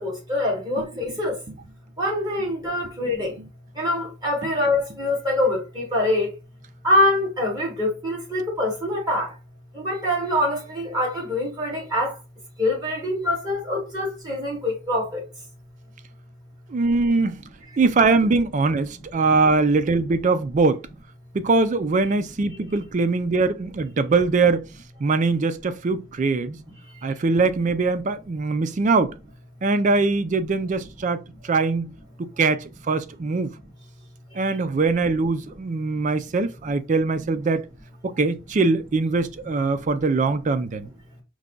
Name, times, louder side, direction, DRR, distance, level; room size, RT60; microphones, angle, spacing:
voice 1, 0.0-1.3 2.0-3.3 3.8-6.3 6.8-9.3 9.7-12.1 12.6-15.2, left 1 dB, 20° right, 1.7 m, -24 dB
voice 2, 0.8-1.2 3.4-3.5 4.4-4.5 16.7-17.4 17.8-20.8 21.3-24.6 25.0-26.6 27.0-29.1 29.6-31.9 32.2-33.5 34.4-37.7 38.0-40.9, right 3 dB, 35° right, 0.3 m, -22 dB
4.6 x 2.2 x 3.8 m
head